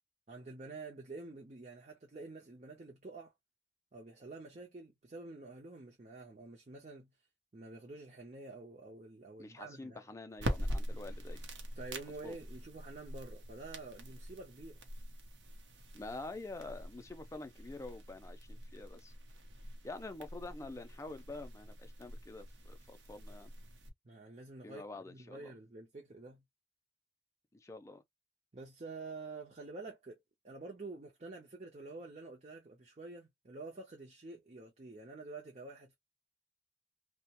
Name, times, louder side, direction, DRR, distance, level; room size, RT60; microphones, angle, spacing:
voice 1, 0.3-3.3 3.9-7.1 7.5-10.0 11.8-14.8 24.0-26.4 28.5-30.2 30.4-35.9, right 3 dB, 40° right, 0.6 m, -48 dB
voice 2, 9.4-11.4 12.2-12.3 15.9-19.1 19.8-23.5 24.6-25.5 27.6-28.0, left 2 dB, 15° left, 0.4 m, -47 dB
sound 1, 10.3-23.9, equal, 90° right, 0.8 m, -44 dB
2.7 x 2.2 x 2.8 m
head